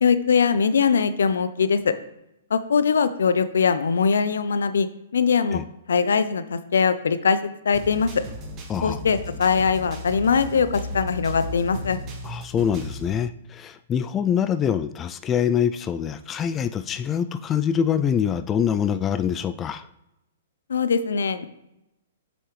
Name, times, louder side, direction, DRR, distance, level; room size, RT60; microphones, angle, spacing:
voice 1, 0.0-1.9 2.5-4.9 5.1-5.6 5.9-7.4 7.6-8.1 8.8-12.0 20.7-21.5, left 6 dB, 75° left, 12 dB, 0.6 m, -21 dB
sound 1, 7.7-13.1, left 1 dB, 30° right, 1.4 m, -35 dB
voice 2, 8.7-9.0 12.2-19.8, left 8 dB, 20° left, 11 dB, 0.3 m, -25 dB
7.8 x 6.3 x 3.2 m, 0.86 s
hypercardioid pair, 125°, 0 cm